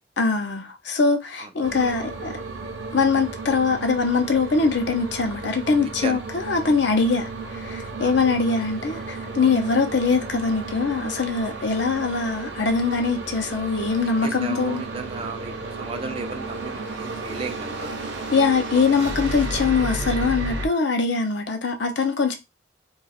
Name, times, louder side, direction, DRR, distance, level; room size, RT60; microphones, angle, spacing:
voice 1, 0.2-2.3 2.9-14.8 18.3-22.3, left 4 dB, 65° left, 0.6 m, -22 dB
voice 2, 1.4-1.9 5.8-6.2 8.0-8.2 14.2-18.0 18.7-18.8, right 4 dB, 30° right, 0.4 m, -35 dB
sound 1, 1.6-20.7, right 2 dB, 70° right, 0.7 m, -33 dB
2.4 x 2.3 x 4.0 m
head